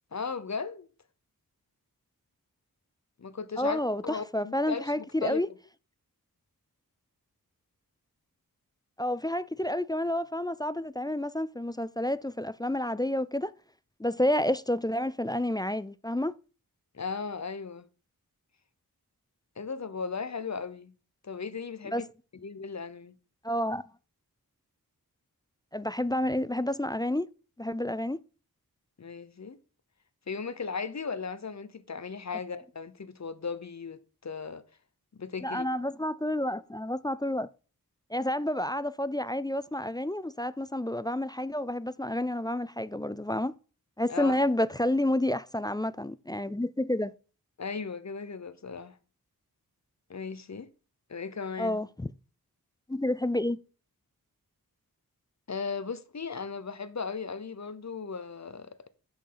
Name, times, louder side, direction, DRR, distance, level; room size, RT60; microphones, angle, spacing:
voice 1, 0.1-0.9 3.2-5.4 16.9-17.9 19.6-20.9 21.2-22.0 22.3-23.2 29.0-29.6 30.3-34.6 35.2-35.7 44.1-44.4 47.6-49.0 50.1-50.7 51.1-51.8 55.5-58.9, left 5 dB, 50° left, 0.8 m, -36 dB
voice 2, 3.6-5.5 9.0-13.5 14.0-16.3 21.9-22.0 23.4-23.8 25.7-27.3 27.6-28.2 35.4-37.5 38.1-43.5 44.0-47.1 51.6-52.1 52.9-53.6, left 1 dB, 10° left, 0.3 m, -29 dB
8.3 x 6.3 x 3.9 m
wide cardioid pair, 65°, 36 cm